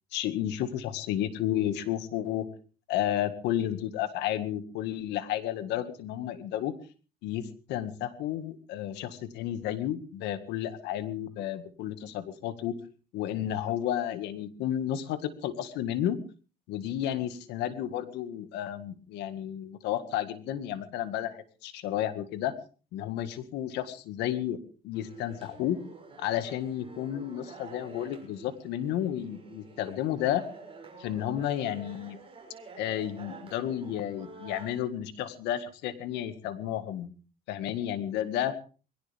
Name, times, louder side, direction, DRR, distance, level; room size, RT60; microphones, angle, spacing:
voice 1, 0.1-2.5 2.9-6.7 7.2-12.8 13.1-16.2 16.7-22.5 22.9-24.6 24.8-25.8 26.2-30.4 31.0-32.2 32.8-37.1 37.5-38.5, left 11 dB, 90° left, 11 dB, 1.9 m, -32 dB
sound 1, 24.9-34.9, right 4 dB, 30° right, 6.6 m, -49 dB
21.5 x 17.5 x 3.5 m, 0.37 s
cardioid pair, 110°, 17 cm